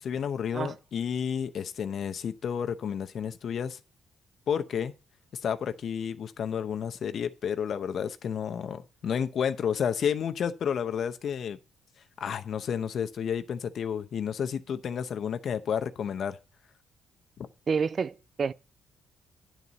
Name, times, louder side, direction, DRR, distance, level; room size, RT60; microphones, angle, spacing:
voice 1, 0.0-3.8 4.5-4.9 5.4-11.6 12.2-16.4 17.4-17.5, left 7 dB, 55° left, 0.8 m, -31 dB
voice 2, 17.7-18.5, right 5 dB, 45° right, 0.4 m, -29 dB
10.5 x 4.1 x 7.4 m
cardioid pair, 115°, 0 cm